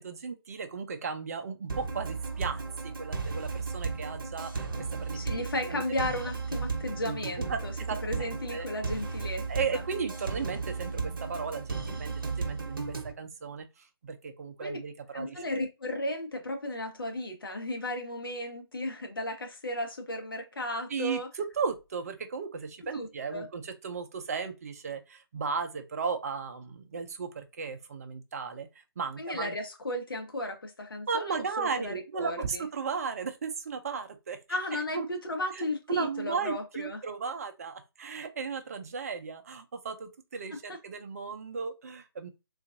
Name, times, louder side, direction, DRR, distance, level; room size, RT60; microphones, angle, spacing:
voice 1, 0.0-4.7 5.0-5.2 5.6-5.8 7.4-7.6 7.9-8.7 9.5-13.7 14.0-15.4 20.9-21.2 21.6-28.7 29.0-29.5 31.1-34.4 34.7-35.1 35.5-42.3, right 5 dB, 40° right, 0.5 m, -35 dB
sound 1, 1.7-13.1, right 4 dB, 60° right, 0.9 m, -35 dB
voice 2, 5.1-7.7 8.0-9.5 9.7-9.8 14.6-14.8 15.1-21.3 22.8-23.5 29.2-32.7 34.5-37.0 40.5-40.8, left 1 dB, 60° left, 1.1 m, -35 dB
3.8 x 2.5 x 2.5 m
figure-of-eight pair, 145°, 13 cm